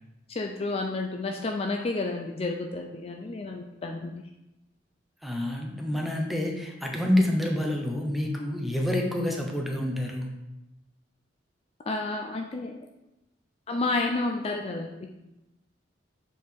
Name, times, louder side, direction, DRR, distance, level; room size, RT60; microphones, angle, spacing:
voice 1, 0.3-4.2 11.9-12.8 13.7-15.1, left 2 dB, 35° left, 3 dB, 0.4 m, -30 dB
voice 2, 5.2-10.3, left 1 dB, ahead, 0 dB, 0.9 m, -28 dB
7.4 x 4.6 x 3.6 m, 0.93 s
head